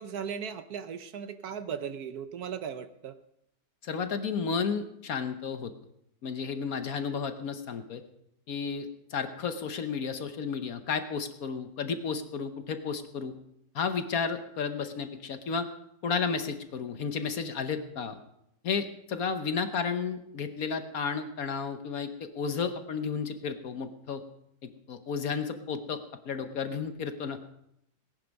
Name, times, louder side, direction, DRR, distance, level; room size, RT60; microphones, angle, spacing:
voice 1, 0.0-3.2, right 7 dB, 65° right, 11 dB, 1.2 m, -37 dB
voice 2, 3.8-5.7 6.2-8.0 8.5-13.3 13.7-15.7 16.0-18.2 18.6-24.2 24.6-26.0 26.3-27.4, left 5 dB, 60° left, 9 dB, 1.3 m, -32 dB
18.0 x 10.5 x 5.2 m, 0.79 s
omnidirectional pair, 1.9 m